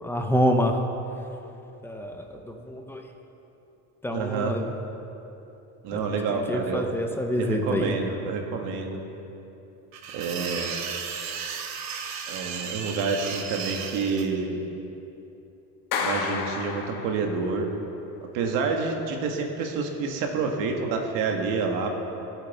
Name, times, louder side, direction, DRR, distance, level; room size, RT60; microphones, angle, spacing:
voice 1, 0.0-0.8 1.8-3.0 4.0-4.7 5.9-8.0, equal, 5° left, 3 dB, 0.4 m, -27 dB
voice 2, 4.1-4.6 5.8-6.9 7.3-9.0 10.1-10.8 12.3-14.6 16.0-17.7 18.3-22.0, right 4 dB, 80° right, 3 dB, 1.6 m, -28 dB
sound 1, 9.9-14.2, right 6 dB, 55° right, 1.0 m, -34 dB
Clapping, 15.9-17.6, left 5 dB, 70° left, 1.2 m, -30 dB
17.5 x 8.1 x 4.2 m, 2.9 s
cardioid pair, 175°, 34 cm